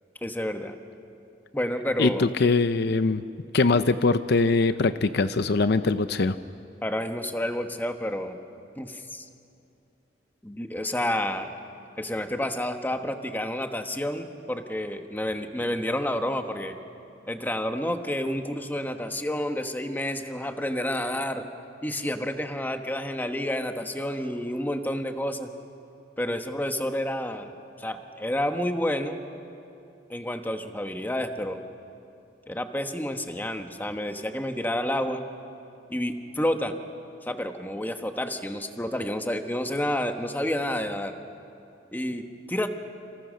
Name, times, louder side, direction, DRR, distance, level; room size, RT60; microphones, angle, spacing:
voice 1, 0.2-0.7 1.5-2.3 6.8-8.4 8.8-9.2 10.4-11.6 12.0-16.8 17.3-21.4 21.8-25.5 26.2-29.2 30.1-31.6 32.5-35.2 35.9-36.7 37.3-41.2 41.9-42.7, left 1 dB, 10° left, 6 dB, 1.3 m, -29 dB
voice 2, 2.0-3.2 3.5-6.4, left 3 dB, 60° left, 11 dB, 0.6 m, -22 dB
29.0 x 26.5 x 6.5 m, 2.7 s
head